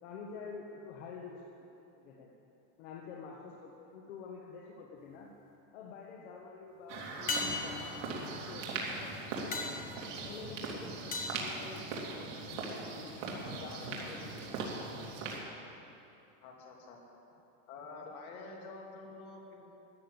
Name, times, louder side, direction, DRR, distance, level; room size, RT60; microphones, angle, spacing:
voice 1, 0.0-1.7 2.0-2.3 2.8-5.3 5.7-9.8 10.2-11.8 12.2-14.7, left 5 dB, 55° left, -1 dB, 1.4 m, -48 dB
sound 1, 5.0-5.5 7.3-12.4 16.9-17.0, left 3 dB, 20° left, 1.2 m, -40 dB
sound 2, 6.9-15.4, right 3 dB, 60° right, 2.9 m, -40 dB
voice 2, 16.4-17.0 17.7-19.7, left 3 dB, 75° left, 0 dB, 3.1 m, -48 dB
13.5 x 10.0 x 8.0 m, 2.9 s
supercardioid pair, 170°, 43 cm